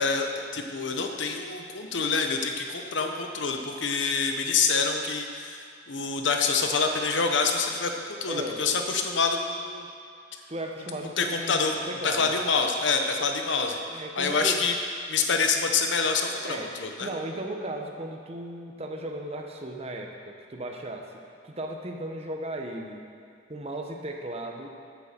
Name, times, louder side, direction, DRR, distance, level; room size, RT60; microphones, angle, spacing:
voice 1, 0.0-9.9 11.0-11.7 12.0-13.8 14.2-14.7 15.1-17.1, left 4 dB, 80° left, 4 dB, 1.0 m, -26 dB
voice 2, 8.3-8.7 10.5-12.5 13.9-14.7 16.4-16.7 17.0-21.1 21.4-23.0 23.5-24.7, right 1 dB, 35° right, 2 dB, 0.9 m, -36 dB
8.4 x 7.9 x 6.7 m, 2.4 s
head